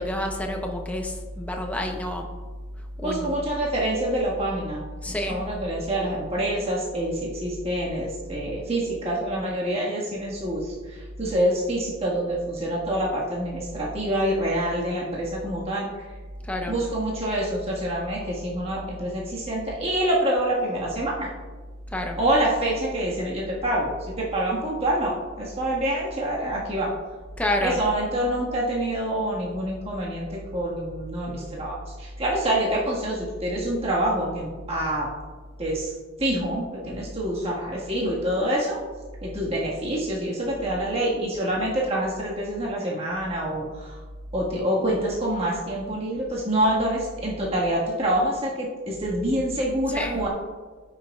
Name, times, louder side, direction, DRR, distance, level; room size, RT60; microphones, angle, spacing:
voice 1, 0.0-2.3 3.0-3.3 5.0-5.4 16.4-16.8 21.9-22.2 27.4-27.8 49.9-50.2, left 1 dB, 5° left, 2 dB, 0.8 m, -28 dB
voice 2, 3.0-4.8 5.3-15.9 16.7-21.3 22.2-26.9 27.6-35.1 35.6-35.9 36.2-38.8 39.2-44.0 44.3-50.3, right 1 dB, 30° right, -5 dB, 1.7 m, -26 dB
14.5 x 6.2 x 2.4 m, 1.4 s
head